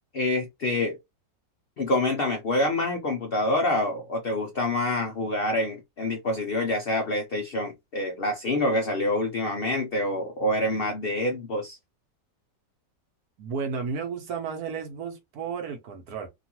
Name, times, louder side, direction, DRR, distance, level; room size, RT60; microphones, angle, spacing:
voice 1, 0.1-1.0 1.8-11.8, left 1 dB, 80° left, 0.5 m, -26 dB
voice 2, 13.4-16.3, right 6 dB, 65° right, 1.2 m, -33 dB
3.0 x 2.4 x 2.8 m
omnidirectional pair, 1.9 m